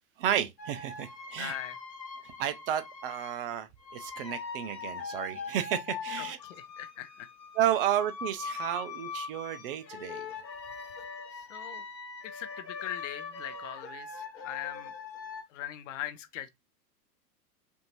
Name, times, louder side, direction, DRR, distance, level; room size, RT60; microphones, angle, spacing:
voice 1, 0.2-1.6 2.4-6.4 7.6-10.3, right 10 dB, 35° right, 0.5 m, -32 dB
sound 1, 0.6-3.4 3.8-15.4, left 5 dB, 85° left, 1.0 m, -41 dB
voice 2, 1.4-1.8 6.2-7.3 11.3-11.8 12.2-14.9 15.5-16.5, left 12 dB, 50° left, 0.7 m, -41 dB
5.2 x 2.7 x 3.0 m
figure-of-eight pair, 95°, 49 cm